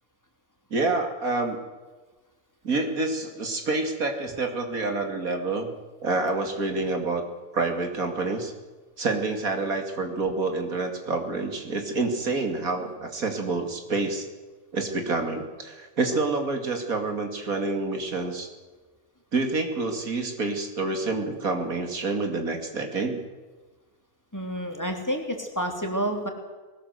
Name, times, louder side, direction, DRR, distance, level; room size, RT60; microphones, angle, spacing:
voice 1, 0.7-1.6 2.6-5.7 6.0-7.2 7.5-8.5 9.0-14.3 14.7-18.5 19.3-23.2, right 3 dB, 75° right, 4 dB, 3.0 m, -28 dB
voice 2, 24.3-26.3, equal, 10° left, 3 dB, 3.0 m, -29 dB
20.5 x 18.5 x 7.9 m, 1.3 s
omnidirectional pair, 1.5 m